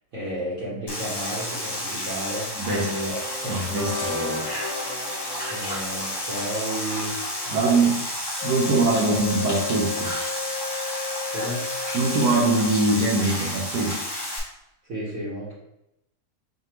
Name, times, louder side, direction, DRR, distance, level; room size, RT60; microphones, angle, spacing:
voice 1, 0.1-3.2 3.4-3.6 5.5-7.9 8.6-9.3 11.3-11.7 14.9-15.5, right 1 dB, 60° right, -8 dB, 1.4 m, -32 dB
sound 1, 0.9-14.4, left 1 dB, 25° left, 0.5 m, -31 dB
voice 2, 2.6-2.9 3.4-4.5 7.5-8.0 8.4-10.1 11.9-14.0, right 3 dB, 75° right, -1 dB, 1.3 m, -23 dB
sound 2, 2.7-7.7, left 2 dB, 20° right, 1.1 m, -36 dB
Wind instrument woodwind instrument, 8.4-13.0, left 5 dB, 85° left, 1.2 m, -34 dB
4.9 x 2.5 x 2.9 m, 0.84 s
omnidirectional pair, 1.7 m